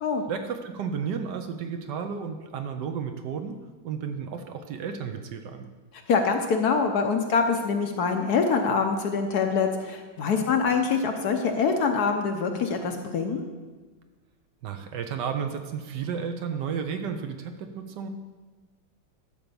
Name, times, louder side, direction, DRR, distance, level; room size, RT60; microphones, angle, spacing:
voice 1, 0.3-5.7 14.6-18.1, right 6 dB, 70° right, 6 dB, 1.2 m, -33 dB
voice 2, 6.1-13.5, left 5 dB, 60° left, 4 dB, 1.1 m, -25 dB
12.0 x 4.5 x 6.9 m, 1.4 s
omnidirectional pair, 2.1 m